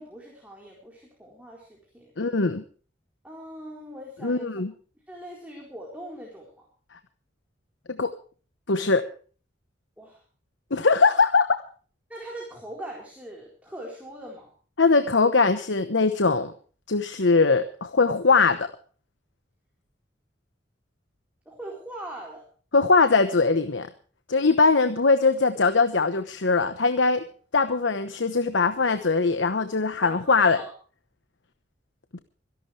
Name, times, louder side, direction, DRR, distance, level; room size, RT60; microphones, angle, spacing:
voice 1, 0.0-2.1 3.2-4.6 5.1-6.7 10.0-10.2 12.1-14.5 21.5-22.4 30.0-30.7, right 1 dB, 10° right, -2 dB, 4.2 m, -41 dB
voice 2, 2.2-2.6 4.2-4.7 7.9-8.1 8.7-9.0 10.7-11.6 14.8-16.5 16.9-18.7 22.7-23.9 24.3-27.2 27.5-30.6 32.1-32.2, left 4 dB, 85° left, 10 dB, 1.1 m, -21 dB
25.5 x 11.5 x 3.3 m, 0.41 s
head